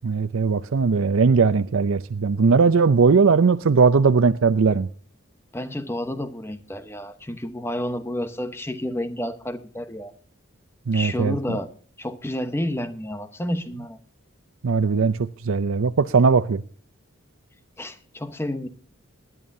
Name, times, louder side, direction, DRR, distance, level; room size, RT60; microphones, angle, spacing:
voice 1, 0.0-4.9 10.9-11.6 14.6-16.6, right 5 dB, 80° right, 0.5 m, -19 dB
voice 2, 5.5-10.1 10.9-11.7 12.0-14.0 17.8-18.7, left 1 dB, 10° left, 0.9 m, -30 dB
20.0 x 11.0 x 2.7 m
head